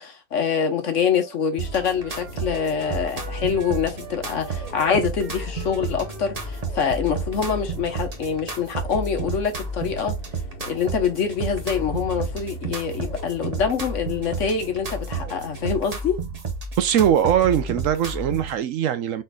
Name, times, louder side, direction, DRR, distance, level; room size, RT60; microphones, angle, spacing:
voice 1, 0.0-10.2 10.6-16.2, left 6 dB, 60° left, 1.3 m, -25 dB
Wind instrument woodwind instrument, 1.2-7.6, right 3 dB, 85° right, 1.4 m, -42 dB
sound 1, 1.6-15.8, equal, 40° left, 1.3 m, -40 dB
sound 2, 1.6-18.6, right 3 dB, 30° right, 0.9 m, -31 dB
voice 2, 16.8-19.2, right 10 dB, 70° right, 1.0 m, -21 dB
4.9 x 4.4 x 2.3 m
omnidirectional pair, 1.5 m